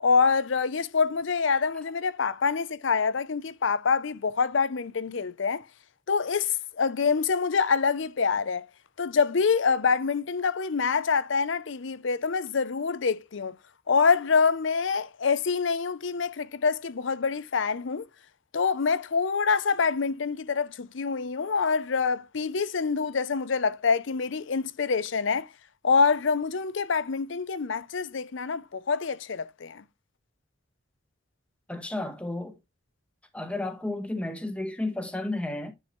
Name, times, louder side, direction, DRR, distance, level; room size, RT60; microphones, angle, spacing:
voice 1, 0.0-5.6 6.1-8.7 9.0-13.6 13.9-18.1 18.5-25.5 25.8-29.8, left 5 dB, 70° left, 0.6 m, -26 dB
voice 2, 31.7-32.6 33.3-35.7, left 2 dB, 5° left, 1.2 m, -32 dB
9.7 x 4.7 x 3.1 m
head